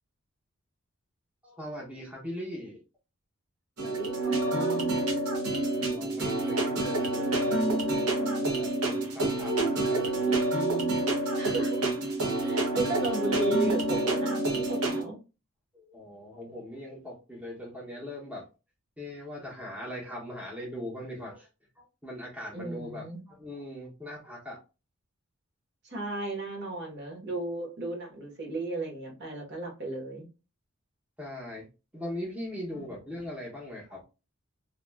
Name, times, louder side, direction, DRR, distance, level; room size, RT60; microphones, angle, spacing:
voice 1, 1.4-2.8 5.7-10.5 15.7-18.4 19.0-21.5 21.8-24.6 31.2-31.7 31.9-34.0, left 1 dB, 5° right, -4 dB, 0.7 m, -40 dB
voice 2, 3.8-5.1 11.4-11.9 12.4-15.2 22.5-23.2 25.8-30.3 32.7-33.0, right 2 dB, 50° right, 0 dB, 1.0 m, -35 dB
sound 1, 3.8-15.0, right 2 dB, 90° right, 0.8 m, -28 dB
3.0 x 2.3 x 2.2 m, 0.30 s
head